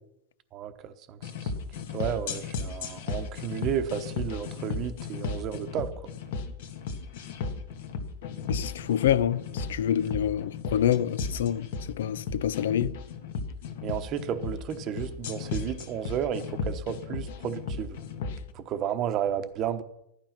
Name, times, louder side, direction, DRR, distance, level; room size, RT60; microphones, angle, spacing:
voice 1, 0.5-1.5 1.9-5.9 13.8-18.0 18.5-19.8, right 9 dB, 25° right, 1.0 m, -32 dB
sound 1, 1.2-18.4, left 4 dB, 60° left, 1.8 m, -35 dB
voice 2, 8.5-13.0, left 10 dB, 85° left, 0.6 m, -27 dB
15.5 x 12.0 x 5.9 m
supercardioid pair, 170°, 0 cm